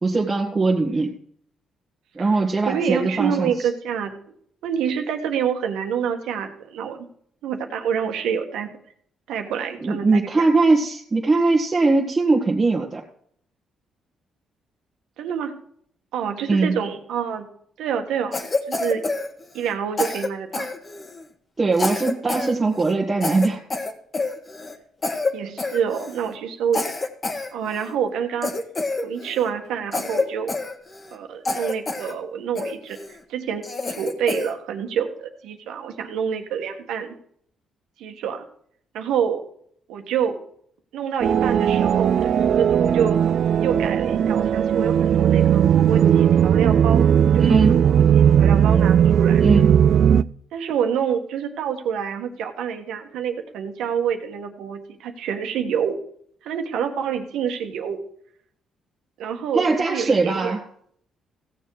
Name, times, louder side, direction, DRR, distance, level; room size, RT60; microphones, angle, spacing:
voice 1, 0.0-1.1 2.1-3.5 9.8-13.0 16.5-16.8 21.6-23.6 47.4-47.8 49.4-49.7 59.5-60.6, right 3 dB, 25° right, -2 dB, 1.6 m, -20 dB
voice 2, 2.2-4.1 4.6-7.0 7.4-8.7 9.3-10.5 15.2-15.5 16.1-17.5 17.8-19.0 19.5-20.7 25.3-26.9 27.5-28.5 29.0-30.5 31.1-37.1 38.0-38.4 38.9-39.4 39.9-40.4 40.9-43.2 43.6-49.4 50.5-56.0 56.4-58.0 59.2-60.5, right 7 dB, 85° right, 5 dB, 1.5 m, -27 dB
Cough, 18.3-19.7 20.0-21.2 21.7-22.5 22.8-22.9 23.2-24.8 25.0-25.3 25.6-26.2 26.7-27.9 28.4-29.5 29.9-31.2 31.4-32.1 32.6-33.1 33.6-34.5, left 3 dB, 30° left, 1.5 m, -27 dB
sound 1, 41.2-50.2, right 9 dB, 65° right, 0.4 m, -17 dB
16.0 x 7.0 x 4.8 m, 0.63 s
cardioid pair, 90°, 0 cm